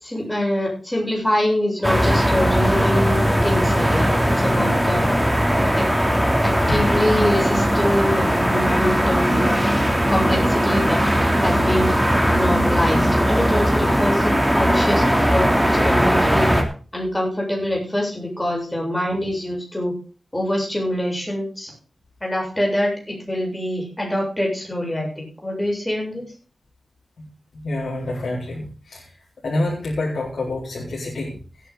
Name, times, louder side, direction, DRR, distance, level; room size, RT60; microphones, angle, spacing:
voice 1, 0.0-4.1 4.4-5.0 5.8-5.9 6.4-9.6 10.1-11.0 11.4-11.9 12.3-16.5 16.9-19.9 20.3-21.7 22.2-26.2, left 1 dB, 15° left, -1 dB, 7.6 m, -24 dB
sound 1, 1.8-16.6, equal, 5° right, 2.8 m, -19 dB
voice 2, 27.5-29.1 29.4-31.7, left 2 dB, 75° left, -4 dB, 4.2 m, -28 dB
17.0 x 9.4 x 3.9 m, 0.36 s
wide cardioid pair, 70°, 0 cm